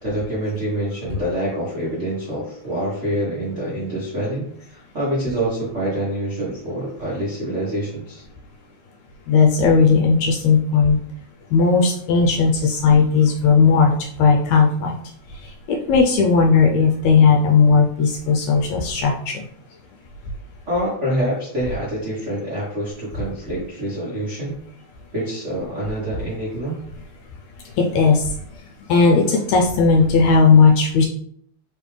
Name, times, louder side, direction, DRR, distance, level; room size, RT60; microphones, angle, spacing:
voice 1, 0.0-8.2 20.7-24.6 25.1-26.8, right 1 dB, 75° right, -7 dB, 0.6 m, -26 dB
voice 2, 9.3-11.0 11.5-13.9 14.2-14.9 15.7-19.4 27.8-28.2 28.9-31.1, left 5 dB, 80° left, 2 dB, 1.7 m, -16 dB
4.5 x 3.4 x 3.2 m, 0.66 s
omnidirectional pair, 3.5 m